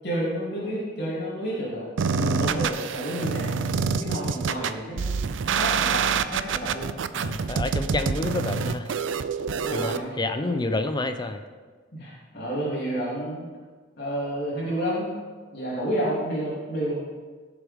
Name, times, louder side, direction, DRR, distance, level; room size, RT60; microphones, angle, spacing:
voice 1, 0.0-1.9 2.1-3.6 4.0-5.2 5.5-6.9 9.6-10.7 11.9-13.5 14.0-15.1 15.5-17.0, right 1 dB, 60° left, -7 dB, 3.1 m, -30 dB
sound 1, 2.0-10.0, right 6 dB, 85° right, 0.5 m, -26 dB
voice 2, 7.2-8.9 9.7-11.4, left 2 dB, 25° left, 8 dB, 0.6 m, -29 dB
16.0 x 7.2 x 3.6 m, 1.5 s
head